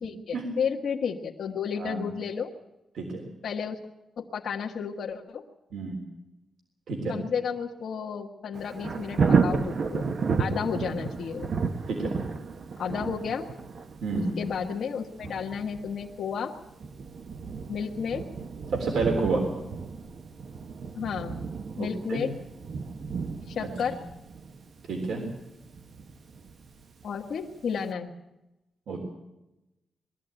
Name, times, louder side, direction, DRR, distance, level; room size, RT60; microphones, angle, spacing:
voice 1, 0.0-2.5 3.4-3.8 4.2-5.4 7.1-10.1 10.4-11.5 12.8-13.5 14.4-16.5 17.7-18.2 20.9-21.4 21.8-22.3 23.5-24.0 27.0-28.1, left 6 dB, 60° left, -1 dB, 1.4 m, -32 dB
voice 2, 1.8-2.1 3.0-3.2 5.7-6.0 6.9-7.2 10.5-10.6 11.9-12.1 14.0-14.3 18.7-19.5 21.7-22.2 23.6-23.7 24.9-25.2 28.9-29.1, right 3 dB, 70° right, 2 dB, 3.6 m, -29 dB
Thunder, 8.5-27.3 27.8-27.9, right 5 dB, 45° right, 1.0 m, -32 dB
21.5 x 14.0 x 8.9 m, 0.95 s
wide cardioid pair, 180°, 0 cm